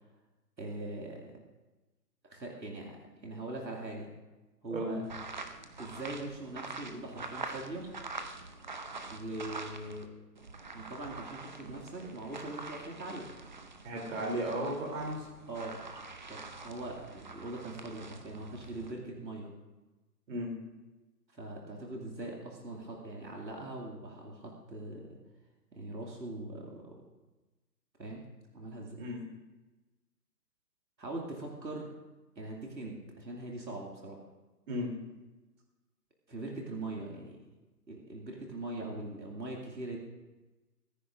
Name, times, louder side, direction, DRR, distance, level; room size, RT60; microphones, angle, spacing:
voice 1, 0.6-1.4 2.2-4.1 4.6-5.0 5.8-7.9 9.1-10.1 10.7-13.3 15.5-15.8 16.3-19.5 21.3-25.2 25.7-26.9 28.0-28.2 28.5-29.0 31.0-31.9 32.4-34.2 36.3-37.4 37.9-40.0, right 2 dB, 85° right, -1 dB, 2.5 m, -41 dB
sound 1, 5.0-10.1 10.4-18.9, right 3 dB, 30° right, 0.6 m, -45 dB
voice 2, 13.8-15.3 20.3-20.5 29.0-29.2 34.7-34.9, right 1 dB, 50° right, 0 dB, 3.4 m, -34 dB
26.0 x 9.9 x 2.6 m, 1.1 s
figure-of-eight pair, 140°, 50 cm